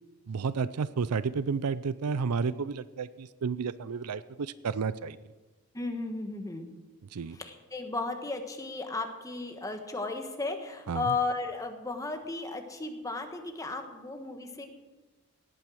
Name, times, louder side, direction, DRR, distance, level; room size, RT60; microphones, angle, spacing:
voice 1, 0.3-5.2 7.1-7.4 10.9-11.2, right 5 dB, 90° right, 16 dB, 0.5 m, -31 dB
voice 2, 5.7-6.7 7.4-14.7, left 3 dB, 15° left, 5 dB, 1.4 m, -34 dB
18.0 x 9.1 x 6.3 m, 1.2 s
head